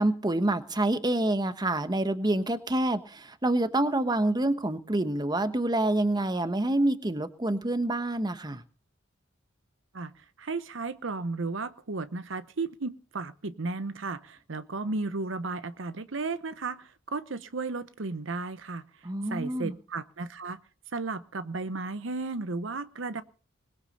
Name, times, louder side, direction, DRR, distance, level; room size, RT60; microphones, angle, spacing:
voice 1, 0.0-8.6 19.0-19.8, right 1 dB, 20° right, 1.1 m, -27 dB
voice 2, 9.9-18.8 19.3-20.6 20.9-23.2, right 3 dB, 70° right, 0.9 m, -34 dB
20.5 x 8.2 x 6.7 m
head